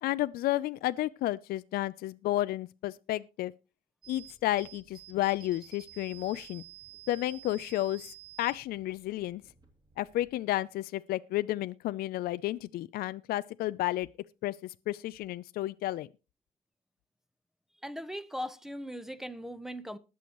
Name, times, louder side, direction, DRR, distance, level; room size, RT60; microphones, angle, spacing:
voice 1, 0.0-3.5 4.1-6.6 7.1-9.4 10.0-14.1 14.4-16.1, left 15 dB, 65° left, 0.4 m, -32 dB
sound 1, 4.0-10.4, right 14 dB, 25° right, 2.7 m, -52 dB
voice 2, 17.8-20.0, equal, ahead, 0.9 m, -39 dB
20.5 x 7.0 x 3.0 m
cardioid pair, 110°, 17 cm